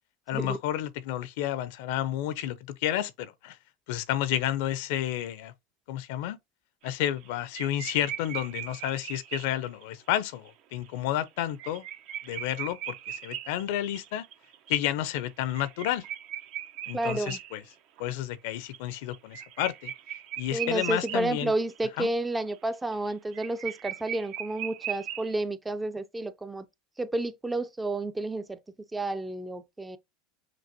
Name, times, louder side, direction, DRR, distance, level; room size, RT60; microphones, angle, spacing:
voice 1, 0.3-3.6 3.9-5.5 5.9-6.4 6.8-11.8 12.2-14.2 14.7-16.0 16.9-17.6 18.0-19.9 20.4-21.5 22.0-22.1, left 12 dB, 70° left, 0.6 m, -31 dB
sound 1, 6.9-7.3 7.5-9.8 10.5-10.6 10.8-10.9 11.3-18.1 18.5-21.4 21.7-21.8 22.1-25.3, right 11 dB, 55° right, 0.7 m, -39 dB
voice 2, 16.9-17.4 20.5-26.7 27.0-28.6 28.9-30.0, right 2 dB, 10° right, 0.5 m, -31 dB
6.0 x 2.5 x 2.9 m
supercardioid pair, 105°, 0 cm